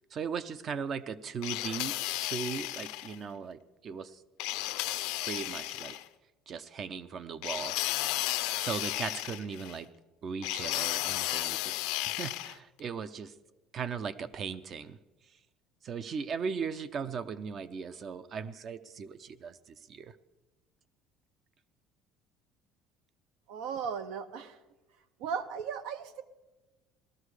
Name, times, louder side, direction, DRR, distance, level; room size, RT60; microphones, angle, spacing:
voice 1, 0.1-4.2 5.2-6.0 6.5-7.8 8.6-9.9 10.2-11.7 12.0-13.3 13.7-15.0 15.8-20.1, right 6 dB, 35° right, 15 dB, 0.5 m, -38 dB
sound 1, 1.4-3.1 4.4-6.0 7.4-9.8 10.4-12.6, left 18 dB, 85° left, 0.5 m, -33 dB
voice 2, 23.5-24.6 25.2-26.2, right 6 dB, 80° right, 12 dB, 0.9 m, -36 dB
17.5 x 13.0 x 4.9 m, 1.1 s
cardioid pair, 155°, 0 cm